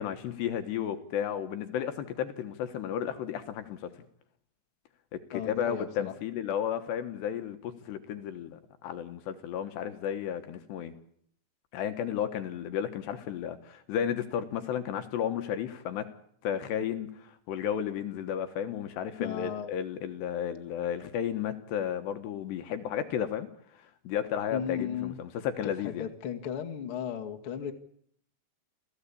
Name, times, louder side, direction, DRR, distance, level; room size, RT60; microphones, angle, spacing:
voice 1, 0.0-3.8 5.1-10.9 11.7-16.0 16.4-23.5 24.0-26.1, left 9 dB, 70° left, 8 dB, 3.1 m, -33 dB
voice 2, 5.3-6.1 19.2-19.7 24.5-25.2 25.6-27.7, left 8 dB, 45° left, 3 dB, 1.8 m, -35 dB
29.0 x 16.0 x 8.5 m, 0.66 s
omnidirectional pair, 5.7 m